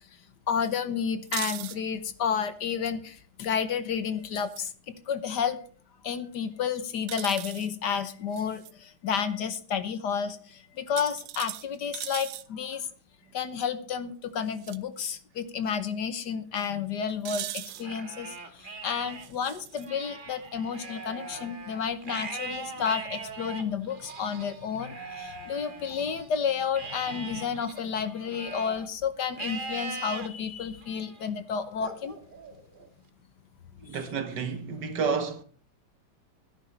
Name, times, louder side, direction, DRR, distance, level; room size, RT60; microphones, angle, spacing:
voice 1, 0.5-4.7 5.1-5.6 6.0-12.9 13.3-32.2 33.9-34.0, left 7 dB, 65° left, 1.5 m, -31 dB
sound 1, 1.2-1.8 4.3-4.7 7.1-7.7 8.3-8.7 11.0-12.5 14.5-14.8 15.1-15.2 17.3-17.9 19.2-19.9, right 13 dB, 85° right, 1.6 m, -38 dB
Livestock farm animals working animals, 17.7-19.3 19.7-26.3 26.7-28.9 29.4-30.3 30.8-31.2 31.8-32.9, right 3 dB, 30° right, 1.5 m, -40 dB
voice 2, 33.8-35.4, right 5 dB, 60° right, 1.9 m, -30 dB
16.0 x 9.9 x 4.4 m
omnidirectional pair, 2.1 m